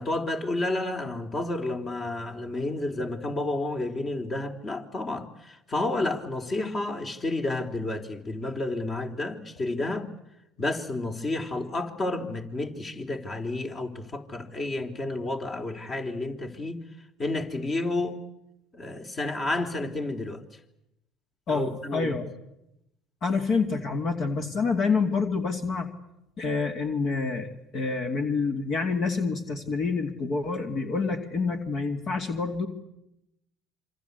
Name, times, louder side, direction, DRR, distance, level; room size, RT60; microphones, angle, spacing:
voice 1, 0.0-10.1 10.6-16.8 17.2-18.2 18.7-20.4 21.5-22.2, left 2 dB, 35° left, 3.6 m, -30 dB
voice 2, 21.5-22.3 23.2-25.9 26.4-32.7, left 4 dB, 50° left, 2.5 m, -27 dB
27.5 x 25.0 x 8.3 m
hypercardioid pair, 65°, 0 cm